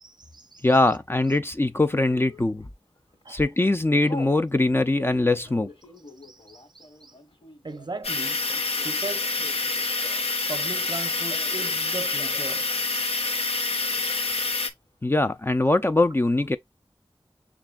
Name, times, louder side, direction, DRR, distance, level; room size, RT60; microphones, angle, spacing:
voice 1, 0.0-0.6 3.2-3.4 6.2-7.1 7.6-8.4 8.8-9.5 10.5-13.6, right 3 dB, 45° right, 0.6 m, -38 dB
voice 2, 0.6-2.7 3.3-5.7 15.0-16.6, left 2 dB, 25° left, 0.4 m, -22 dB
Telephone, 1.9-2.4 3.0-3.2 3.5-4.4 4.9-10.4 10.7-11.8 12.1-12.6 12.9-13.0 13.2-13.8, left 2 dB, 65° left, 1.4 m, -45 dB
sound 1, 8.0-14.7, left 3 dB, 85° left, 0.6 m, -27 dB
6.7 x 2.4 x 2.3 m
wide cardioid pair, 45°, 10 cm